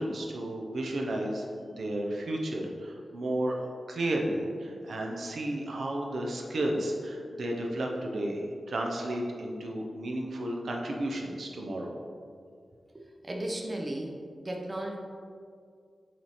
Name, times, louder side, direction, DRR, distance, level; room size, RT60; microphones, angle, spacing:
voice 1, 0.0-11.9, right 1 dB, 70° right, 0 dB, 0.7 m, -33 dB
voice 2, 12.9-14.2 14.4-15.0, right 1 dB, 20° right, 0 dB, 0.5 m, -35 dB
7.2 x 3.2 x 4.1 m, 2.2 s
wide cardioid pair, 155°, 0 cm